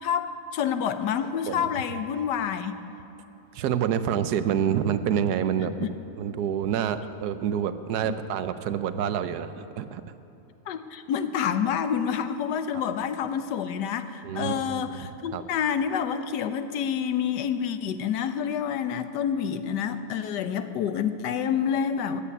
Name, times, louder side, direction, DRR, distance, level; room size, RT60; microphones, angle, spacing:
voice 1, 0.0-2.7 5.7-5.9 10.7-22.2, left 8 dB, 90° left, 10 dB, 1.4 m, -28 dB
voice 2, 3.5-5.7 6.2-10.0 12.7-12.8 14.2-15.4, right 9 dB, 75° right, 11 dB, 1.2 m, -27 dB
14.0 x 8.5 x 9.8 m, 2.8 s
omnidirectional pair, 1.8 m